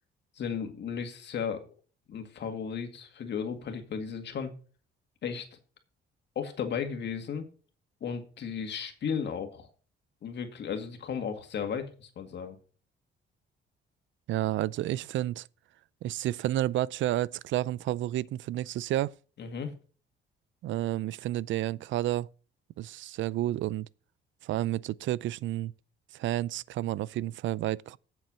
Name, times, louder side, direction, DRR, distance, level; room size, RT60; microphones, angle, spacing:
voice 1, 0.4-1.7 2.1-4.5 5.2-5.5 6.4-7.5 8.0-9.7 10.2-12.6 19.4-19.7, left 7 dB, 60° left, 2.1 m, -35 dB
voice 2, 14.3-15.5 16.0-19.1 20.6-22.3 22.8-23.9 24.4-25.7 26.1-28.0, right 14 dB, 75° right, 0.4 m, -30 dB
7.6 x 7.4 x 6.3 m
cardioid pair, 90°, 20 cm